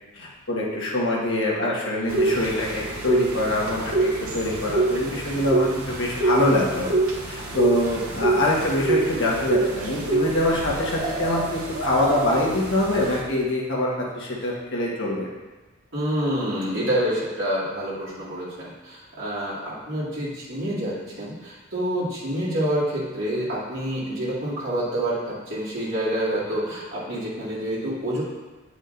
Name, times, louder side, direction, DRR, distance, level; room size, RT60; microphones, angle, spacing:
voice 1, 0.1-6.9 7.3-15.3, left 1 dB, 60° left, -4 dB, 1.3 m, -24 dB
sound 1, 2.1-13.2, right 2 dB, 85° right, 0.9 m, -26 dB
voice 2, 15.9-28.2, right 1 dB, 65° right, -9 dB, 2.1 m, -27 dB
8.2 x 5.0 x 2.6 m, 1.2 s
head